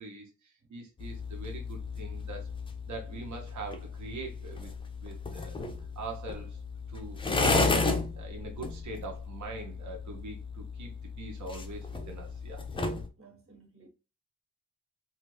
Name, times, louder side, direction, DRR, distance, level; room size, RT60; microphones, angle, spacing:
voice 1, 0.0-2.5 2.9-4.7 5.0-5.7 6.0-6.6 6.9-12.6, right 3 dB, 75° right, 0.9 m, -43 dB
sound 1, 1.0-13.1, left 3 dB, 20° left, 0.4 m, -34 dB
voice 2, 13.2-13.9, right 4 dB, 50° right, 1.1 m, -56 dB
3.2 x 2.4 x 3.2 m
wide cardioid pair, 175°, 29 cm